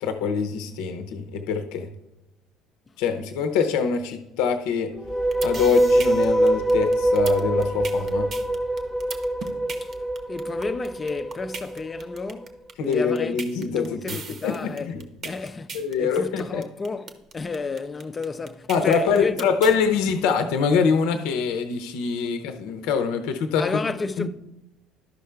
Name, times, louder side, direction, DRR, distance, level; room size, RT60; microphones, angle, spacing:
voice 1, 0.0-1.9 3.0-4.9 5.4-8.3 12.8-15.0 15.7-16.6 18.7-23.6 24.2-24.3, left 6 dB, 70° left, 0.8 m, -24 dB
sound 1, 4.9-12.2, right 1 dB, 10° right, 0.9 m, -23 dB
sound 2, 5.1-19.8, right 5 dB, 50° right, 1.0 m, -37 dB
voice 2, 10.3-13.4 13.7-14.9 15.2-19.5 23.6-24.3, left 4 dB, 30° left, 0.6 m, -31 dB
12.0 x 5.5 x 3.4 m
hypercardioid pair, 60°, 0 cm